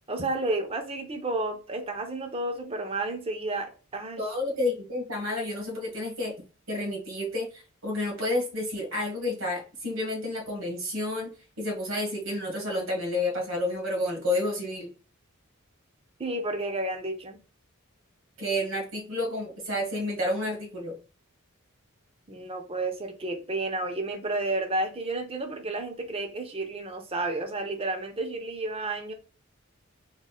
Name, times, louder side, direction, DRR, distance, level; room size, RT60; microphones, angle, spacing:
voice 1, 0.1-4.2 16.2-17.4 22.3-29.1, right 2 dB, 25° right, 0.7 m, -31 dB
voice 2, 4.2-6.3 6.7-11.3 11.6-14.9 18.4-20.9, left 1 dB, 65° right, 1.6 m, -30 dB
3.7 x 2.2 x 4.0 m
head